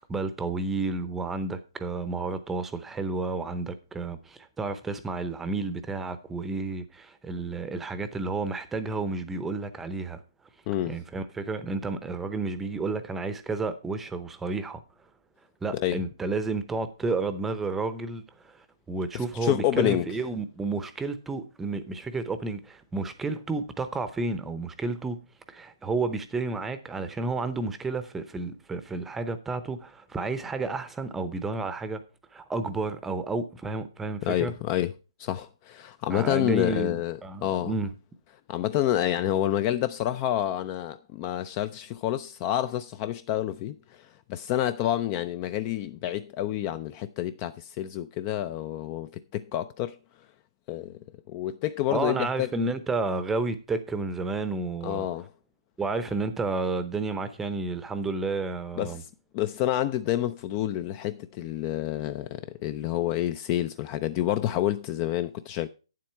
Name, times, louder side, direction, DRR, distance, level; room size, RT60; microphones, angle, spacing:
voice 1, 0.1-10.2 10.9-14.8 15.6-25.2 25.5-32.0 32.3-34.5 36.1-37.9 51.9-55.1 55.8-59.0, right 3 dB, 5° right, 0.7 m, -31 dB
voice 2, 19.1-20.1 34.2-34.9 35.2-37.7 38.5-50.0 50.7-51.0 51.3-52.5 54.8-55.3 58.8-59.1 59.3-65.7, left 12 dB, 25° left, 0.4 m, -28 dB
9.0 x 7.5 x 4.6 m
hypercardioid pair, 145°, 3 cm